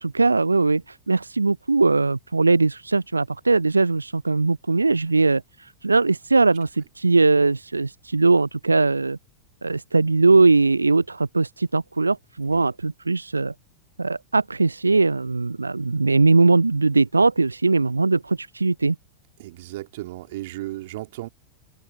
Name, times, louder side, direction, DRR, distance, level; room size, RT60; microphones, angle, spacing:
voice 1, 0.0-9.2 9.6-13.5 14.0-19.0, right 3 dB, 80° right, 0.4 m, -20 dB
voice 2, 19.4-21.3, right 17 dB, 55° right, 3.6 m, -35 dB
open air
figure-of-eight pair, 90°, 0 cm